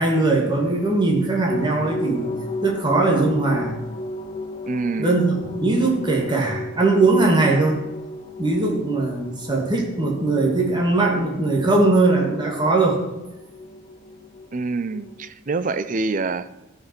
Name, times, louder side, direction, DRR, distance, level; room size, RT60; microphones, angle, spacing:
voice 1, 0.0-2.3 2.6-3.8 5.0-5.3 5.6-7.8 8.4-13.0, right 2 dB, 20° right, 0 dB, 1.8 m, -20 dB
sound 1, 1.5-15.3, left 1 dB, 25° left, 0.6 m, -35 dB
voice 2, 4.7-5.2 14.5-16.5, right 3 dB, 40° right, 13 dB, 0.5 m, -26 dB
13.5 x 5.2 x 6.0 m, 0.99 s
head